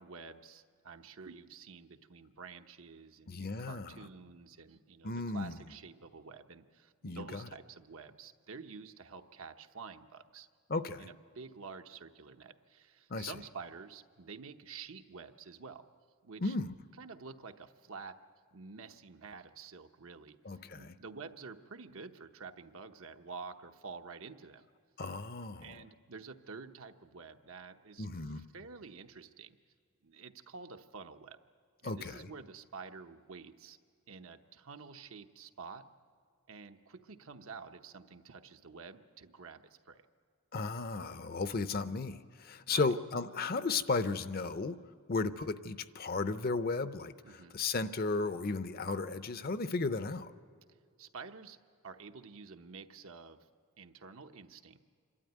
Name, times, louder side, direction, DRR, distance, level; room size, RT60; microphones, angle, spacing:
voice 1, 0.0-10.5 11.0-15.9 16.2-16.5 17.0-18.2 18.5-20.4 20.7-24.6 25.6-29.6 30.0-31.4 31.8-33.8 34.1-35.9 36.5-40.1 42.7-42.9 47.2-47.6 51.0-51.6 51.8-53.5 53.8-54.8, right 5 dB, 70° right, 7 dB, 0.9 m, -49 dB
voice 2, 3.3-4.1 5.0-5.6 7.0-7.5 10.7-11.1 13.1-13.3 16.4-16.7 20.4-20.9 25.0-25.8 28.0-28.4 31.8-32.3 40.5-44.8 45.1-50.3, left 3 dB, 45° left, 12 dB, 0.6 m, -35 dB
26.5 x 12.5 x 9.3 m, 2.2 s
head